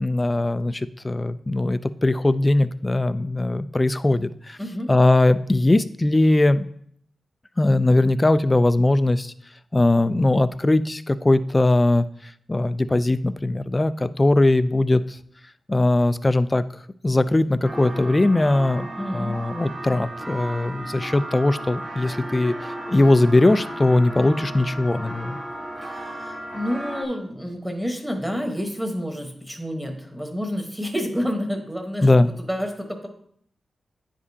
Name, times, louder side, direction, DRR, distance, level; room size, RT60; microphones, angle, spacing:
voice 1, 0.0-4.6 4.9-6.7 7.6-9.3 9.7-12.0 12.5-15.2 15.7-16.6 17.0-18.9 19.1-22.5 22.9-25.4 32.0-32.3, left 2 dB, 20° left, 14 dB, 0.3 m, -20 dB
voice 2, 4.6-4.9 19.0-19.3 25.8-32.1 32.4-33.1, equal, 5° right, 3 dB, 1.1 m, -29 dB
sound 1, 17.6-27.0, right 1 dB, 25° right, 1.0 m, -34 dB
9.8 x 5.0 x 2.7 m, 0.65 s
wide cardioid pair, 95°, 0 cm